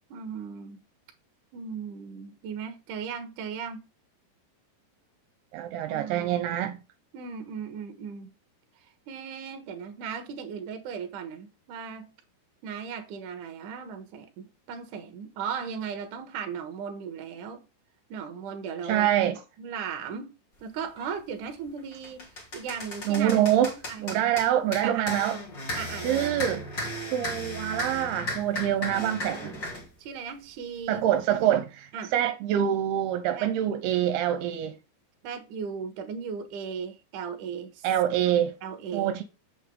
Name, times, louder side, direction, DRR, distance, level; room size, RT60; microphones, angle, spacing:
voice 1, 0.1-0.8 1.5-3.9 5.9-6.5 7.1-8.3 9.1-12.1 12.6-17.6 18.1-19.1 19.6-20.3 20.6-23.3 23.7-24.2 24.8-25.1 25.7-26.4 30.0-31.1 31.9-32.1 33.3-34.1 35.2-37.9 38.6-39.1, right 6 dB, 65° right, 2.5 m, -37 dB
voice 2, 5.5-6.8 18.8-19.4 23.1-23.7 24.0-25.4 26.0-26.7 27.1-29.6 30.9-34.8 37.8-38.5 38.9-39.2, right 11 dB, 80° right, 2.8 m, -25 dB
sound 1, 21.0-21.2 21.7-29.9, left 1 dB, 30° left, 2.9 m, -35 dB
8.3 x 7.0 x 3.6 m
omnidirectional pair, 4.7 m